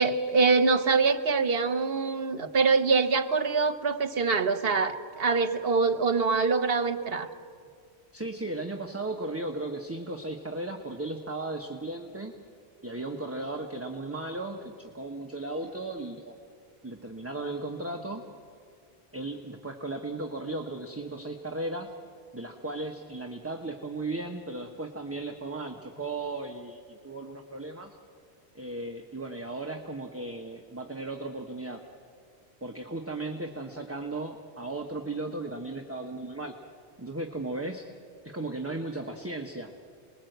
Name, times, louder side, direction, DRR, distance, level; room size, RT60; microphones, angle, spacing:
voice 1, 0.0-7.3, right 4 dB, 65° right, 11 dB, 1.3 m, -24 dB
voice 2, 8.1-12.3 12.8-16.3 16.8-18.3 19.1-22.0 22.3-28.0 28.5-31.8 32.6-36.5 37.0-37.9 38.2-39.7, right 2 dB, 15° right, 3 dB, 1.1 m, -36 dB
28.5 x 21.0 x 8.0 m, 2.1 s
omnidirectional pair, 1.1 m